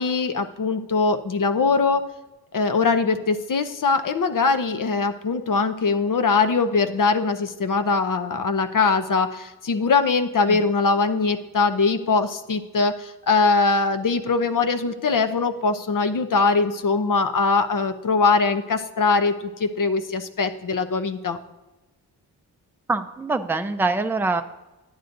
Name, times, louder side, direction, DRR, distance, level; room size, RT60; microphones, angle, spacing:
voice 1, 0.0-2.0 2.5-21.4, left 4 dB, 50° left, 9 dB, 0.8 m, -22 dB
voice 2, 22.9-24.4, right 3 dB, 5° right, 7 dB, 0.5 m, -24 dB
11.0 x 9.1 x 2.6 m, 1.1 s
cardioid pair, 50°, 40 cm